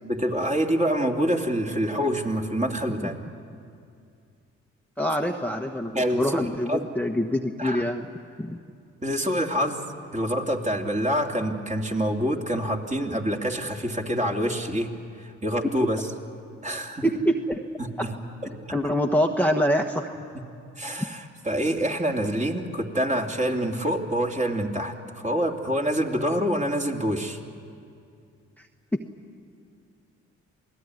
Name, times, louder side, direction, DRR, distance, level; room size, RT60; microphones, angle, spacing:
voice 1, 0.0-3.2 5.9-6.8 7.6-7.9 9.0-9.8 10.1-14.9 15.2-16.0 16.6-17.0 17.8-18.1 20.8-27.4, equal, 25° right, 1 dB, 2.9 m, -26 dB
voice 2, 5.0-8.1 8.4-8.6 15.6-15.7 17.0-17.6 18.0-18.1 18.7-20.1 21.0-21.1 28.6-28.7 28.9-29.0, equal, 5° left, 2 dB, 1.3 m, -25 dB
27.5 x 18.5 x 9.7 m, 2.4 s
supercardioid pair, 50°, 30 cm